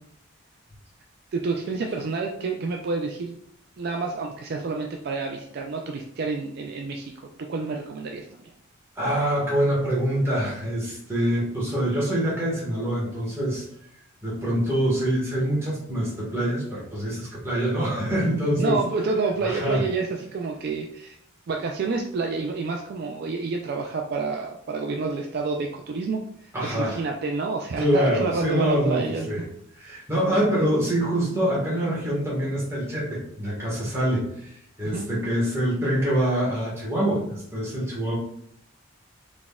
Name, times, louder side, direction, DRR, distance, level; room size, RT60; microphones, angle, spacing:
voice 1, 1.3-3.3 3.8-8.5 18.6-21.2 21.5-29.3 34.8-35.0, right 4 dB, 50° right, 2 dB, 0.3 m, -29 dB
voice 2, 8.9-13.6 14.2-18.8 19.4-19.8 26.5-27.0 27.8-29.4 29.7-38.1, equal, 10° right, -7 dB, 1.4 m, -25 dB
4.0 x 3.5 x 2.2 m, 0.70 s
head